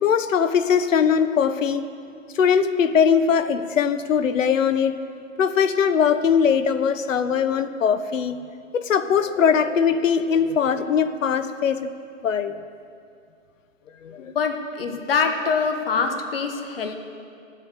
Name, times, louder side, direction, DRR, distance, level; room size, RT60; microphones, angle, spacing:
voice 1, 0.0-1.9 2.3-4.9 5.4-8.4 8.7-11.9 12.2-12.5 14.0-14.3, left 7 dB, 75° left, 12 dB, 0.9 m, -21 dB
voice 2, 14.2-16.9, left 5 dB, 45° left, 6 dB, 1.2 m, -24 dB
13.0 x 8.3 x 6.8 m, 2.3 s
hypercardioid pair, 170°, 39 cm